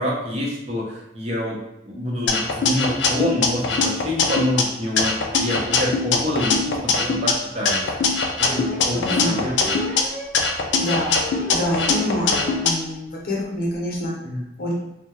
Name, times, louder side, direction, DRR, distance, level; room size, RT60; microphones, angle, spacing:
voice 1, 0.0-1.6 1.9-7.9 8.4-9.8 14.2-14.4, left 1 dB, 35° right, -3 dB, 0.6 m, -26 dB
sound 1, 2.3-4.6 5.0-7.3 7.7-10.0 10.3-12.7, left 4 dB, 80° left, 0.3 m, -21 dB
sound 2, 6.6-6.7 7.1-7.2 8.4-12.7 13.1-13.2 13.4-13.5 13.7-14.0, left 1 dB, 70° right, 0.7 m, -34 dB
voice 2, 8.9-9.6 10.8-14.1 14.6-14.7, left 1 dB, 55° left, -4 dB, 0.7 m, -27 dB
2.2 x 2.0 x 2.9 m, 0.88 s
head